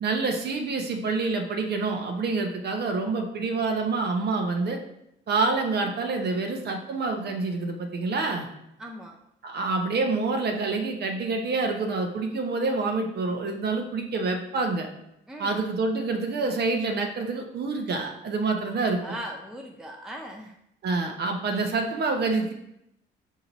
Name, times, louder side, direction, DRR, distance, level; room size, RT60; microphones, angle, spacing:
voice 1, 0.0-4.8 5.3-8.5 9.4-14.9 15.4-19.0 20.8-22.5, right 3 dB, 55° right, 3 dB, 0.7 m, -27 dB
voice 2, 8.8-9.2 15.3-15.6 19.0-20.5, equal, 5° right, 1 dB, 0.4 m, -39 dB
4.5 x 2.8 x 3.9 m, 0.80 s
cardioid pair, 90°, 20 cm